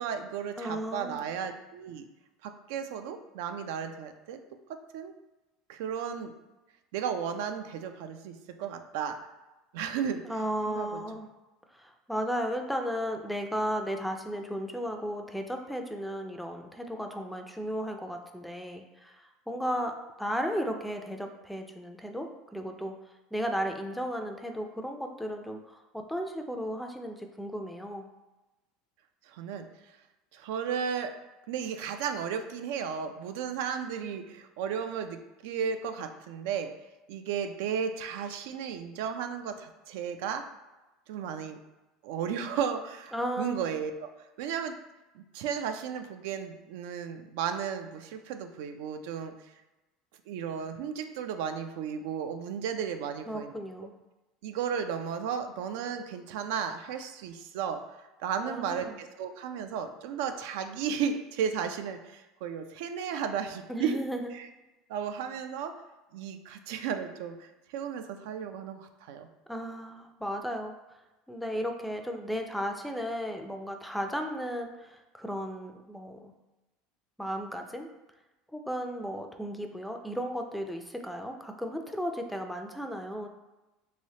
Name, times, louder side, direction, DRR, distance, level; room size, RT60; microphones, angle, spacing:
voice 1, 0.0-2.1 2.4-4.4 4.7-5.1 5.7-6.3 6.9-9.2 9.7-10.2 10.7-11.0 29.3-29.7 30.3-31.1 31.5-36.7 37.1-40.4 41.1-41.6 42.0-44.1 44.4-44.8 45.2-49.3 50.3-53.5 54.4-64.0 64.3-64.5 64.9-65.7 66.1-69.3, right 7 dB, 75° right, 7 dB, 0.3 m, -34 dB
voice 2, 0.6-1.2 10.2-11.3 11.7-22.9 23.3-28.1 43.1-43.6 53.3-53.9 58.4-59.0 63.7-64.3 69.5-70.7 71.3-76.3 77.2-77.9 78.5-83.3, equal, ahead, 4 dB, 0.3 m, -35 dB
3.2 x 3.1 x 2.7 m, 1.1 s
supercardioid pair, 125°, 0 cm